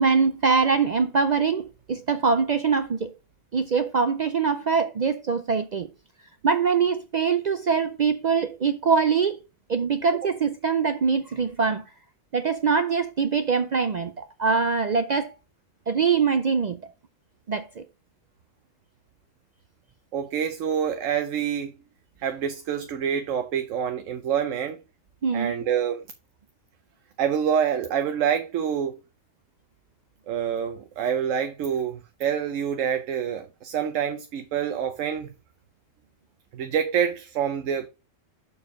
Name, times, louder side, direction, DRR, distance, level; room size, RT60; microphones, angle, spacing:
voice 1, 0.0-3.1 3.5-5.9 6.4-9.4 9.7-11.8 12.3-15.3 15.9-16.8 17.5-17.8 25.2-25.5, right 5 dB, 60° right, 0.4 m, -23 dB
voice 2, 20.1-21.7 22.2-24.8 25.3-26.0 27.2-28.9 30.3-35.3 36.5-37.9, right 8 dB, 85° right, 1.1 m, -26 dB
6.9 x 4.7 x 4.6 m
omnidirectional pair, 1.3 m